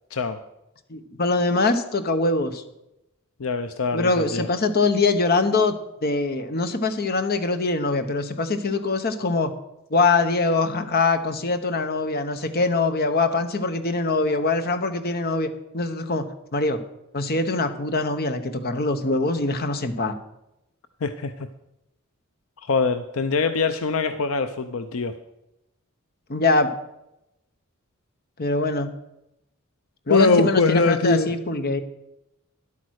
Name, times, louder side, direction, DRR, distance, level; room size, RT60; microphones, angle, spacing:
voice 1, 0.9-2.6 3.9-5.7 6.0-9.5 9.9-15.5 15.7-16.3 16.5-16.8 17.1-20.1 26.3-26.7 28.4-28.9 30.1-31.8, left 3 dB, 45° left, 8 dB, 1.0 m, -23 dB
voice 2, 3.4-4.5 21.0-21.5 22.6-25.1 30.1-31.3, left 3 dB, 70° left, 9 dB, 0.6 m, -22 dB
11.0 x 8.5 x 6.4 m, 0.88 s
head